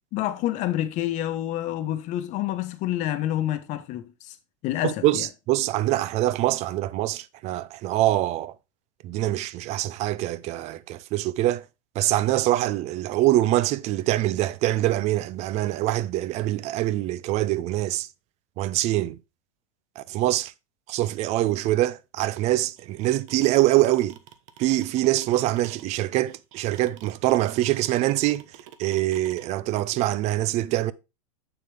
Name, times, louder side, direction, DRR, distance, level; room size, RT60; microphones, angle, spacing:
voice 1, 0.1-4.4 4.6-5.3, left 13 dB, 45° left, 1.1 m, -28 dB
voice 2, 4.8-8.5 9.0-11.6 12.0-18.1 18.6-19.2 20.0-20.5 20.9-24.2 24.6-28.4 28.8-30.9, right 15 dB, 40° right, 0.5 m, -24 dB
sound 1, 22.8-29.5, right 11 dB, 65° right, 1.1 m, -47 dB
6.9 x 6.8 x 3.4 m
supercardioid pair, 130°, 18 cm